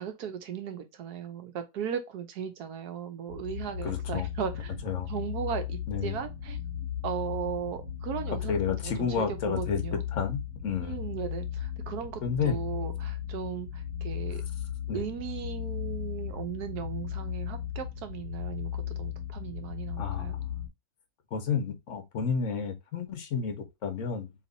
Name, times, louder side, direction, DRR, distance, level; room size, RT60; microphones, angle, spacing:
voice 1, 0.0-4.7 5.1-6.6 7.0-10.0 10.8-14.4 14.9-20.4, right 8 dB, 85° right, 1.3 m, -37 dB
sound 1, 3.3-20.7, left 9 dB, 65° right, 1.8 m, -36 dB
voice 2, 3.8-4.3 4.8-5.1 5.9-6.1 8.5-9.8 10.1-11.0 12.2-12.6 14.9-15.0 20.0-20.5 21.3-24.3, left 6 dB, 60° left, 1.1 m, -31 dB
3.4 x 3.0 x 3.8 m
omnidirectional pair, 1.6 m